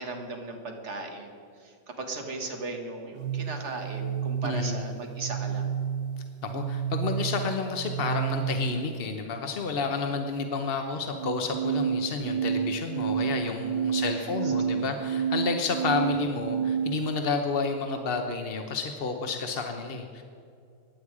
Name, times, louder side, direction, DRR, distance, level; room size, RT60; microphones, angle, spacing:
voice 1, 0.0-5.7 13.9-14.5, right 3 dB, 40° right, 3 dB, 1.7 m, -37 dB
sound 1, 3.2-9.1 11.2-17.1, right 7 dB, 75° right, 1.2 m, -30 dB
voice 2, 4.4-4.9 6.4-20.2, left 4 dB, 55° left, 5 dB, 0.6 m, -30 dB
15.5 x 10.0 x 4.8 m, 2.3 s
omnidirectional pair, 2.1 m